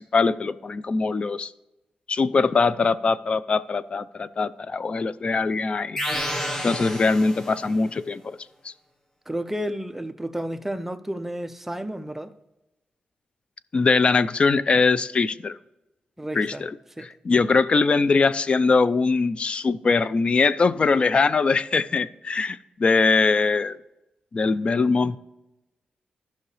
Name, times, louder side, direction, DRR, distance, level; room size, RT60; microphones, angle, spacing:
voice 1, 0.0-1.5 2.1-6.0 6.6-8.4 8.6-8.7 13.7-15.6 16.3-16.7 17.0-23.8 24.3-25.2, left 4 dB, 40° left, 0.4 m, -22 dB
sound 1, 6.0-7.8, equal, 15° left, 1.1 m, -30 dB
voice 2, 9.3-12.3 16.2-16.7 17.0-17.1, right 1 dB, 10° right, 0.6 m, -31 dB
15.0 x 5.8 x 3.3 m
cardioid pair, 100°, 3 cm